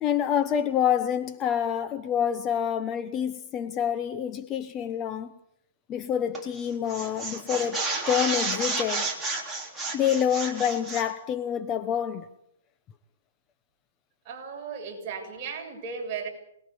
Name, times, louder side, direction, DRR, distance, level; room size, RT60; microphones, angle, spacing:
voice 1, 0.0-5.3 5.9-9.1 9.9-12.3, left 9 dB, 20° left, 1.0 m, -27 dB
sound 1, 6.3-6.6 6.9-11.1, right 3 dB, 5° right, 3.3 m, -31 dB
voice 2, 14.2-16.3, right 5 dB, 30° right, 7.9 m, -36 dB
26.5 x 20.5 x 8.5 m
hypercardioid pair, 150°, 0 cm